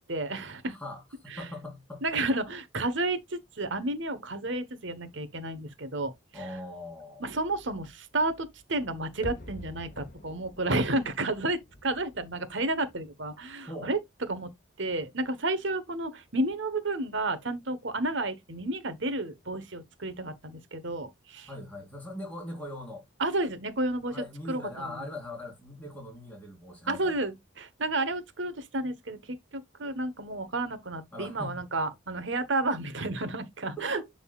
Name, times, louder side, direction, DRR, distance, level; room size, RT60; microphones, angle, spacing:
voice 1, 0.1-0.8 1.3-1.5 2.0-6.5 7.2-14.0 14.3-14.5 14.8-21.5 23.2-24.2 24.5-25.0 26.9-34.0, right 2 dB, 65° right, 1.3 m, -31 dB
voice 2, 0.7-2.0 6.3-7.3 13.7-13.9 21.5-23.0 24.0-27.1 31.1-31.6 33.8-34.1, left 1 dB, 10° left, 4.2 m, -40 dB
sound 1, 9.2-14.2 14.4-14.5, left 1 dB, 40° left, 1.2 m, -47 dB
11.0 x 4.0 x 2.4 m
head